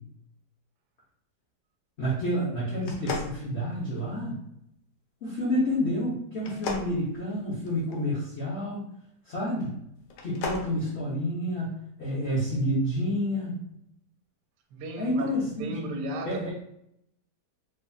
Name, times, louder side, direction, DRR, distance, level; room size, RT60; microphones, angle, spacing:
voice 1, 2.0-4.4 5.2-8.8 9.2-9.8 10.2-13.6 15.0-15.7 16.2-16.5, equal, 45° left, 1.1 m, -29 dB
sound 1, 2.8-4.2 6.4-8.0 10.0-10.7, left 3 dB, 85° left, 1.2 m, -36 dB
voice 2, 14.7-16.5, right 1 dB, 85° right, 1.2 m, -35 dB
4.0 x 3.3 x 2.3 m
omnidirectional pair, 1.8 m